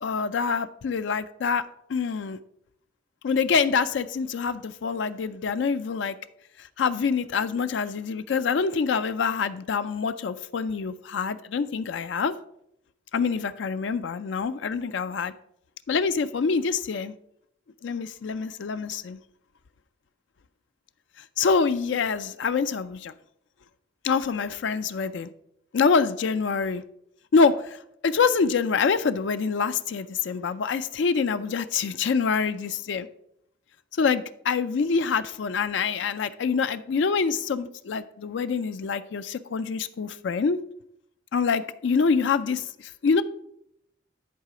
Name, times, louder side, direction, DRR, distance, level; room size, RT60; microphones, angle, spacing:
voice 1, 0.0-1.6 1.9-2.4 3.2-6.2 6.8-12.3 13.1-15.3 15.9-17.1 17.8-19.2 21.4-23.1 24.0-25.3 25.7-26.8 27.3-27.8 28.0-33.1 34.0-40.6 41.3-43.2, left 5 dB, 75° left, 0.4 m, -25 dB
10.5 x 4.1 x 4.8 m
head